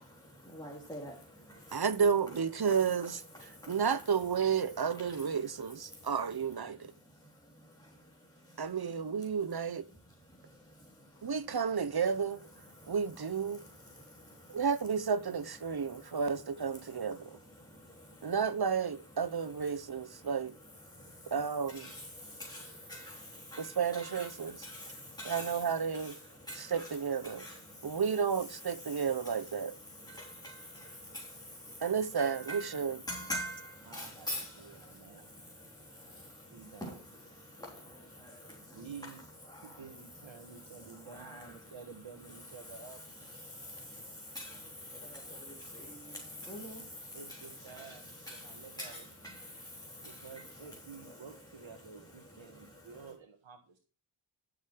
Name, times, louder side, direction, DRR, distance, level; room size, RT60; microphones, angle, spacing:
voice 1, 0.0-1.8 3.3-3.8 4.9-5.4 5.9-6.1 7.0-8.7 10.2-11.3 12.7-13.0 13.5-14.7 15.7-16.2 16.8-18.3 20.0-20.3 20.9-21.3 21.7-28.0 28.7-39.1 39.5-41.8 42.3-53.1, equal, 10° left, 3.7 m, -47 dB
voice 2, 1.7-6.9 8.6-9.9 11.2-12.4 12.9-13.6 14.5-17.4 18.2-20.5 21.3-21.9 23.6-24.7 25.2-26.2 26.5-27.4 27.8-29.8 31.8-33.0, right 6 dB, 50° right, 1.1 m, -32 dB
voice 3, 33.9-34.3 34.6-35.3 36.5-37.0 38.7-39.2 39.6-43.0 47.1-49.1 50.0-53.8, right 5 dB, 70° right, 1.7 m, -51 dB
13.5 x 7.0 x 4.7 m
wide cardioid pair, 70°, 48 cm